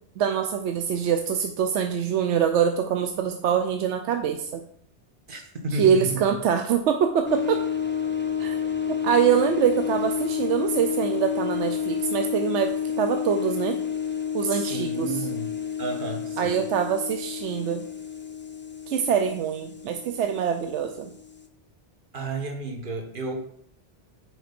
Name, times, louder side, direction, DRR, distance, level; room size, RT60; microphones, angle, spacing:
voice 1, 0.2-4.6 5.7-7.6 8.4-8.6 9.0-13.8 14.3-15.2 16.4-17.8 18.9-21.1, right 8 dB, 80° right, 6 dB, 0.9 m, -24 dB
voice 2, 5.3-6.3 14.5-16.6 22.1-23.4, right 2 dB, 50° right, 4 dB, 1.3 m, -32 dB
sound 1, 7.3-21.5, left 8 dB, 20° left, 0.3 m, -30 dB
6.3 x 4.6 x 5.1 m, 0.64 s
omnidirectional pair, 1.2 m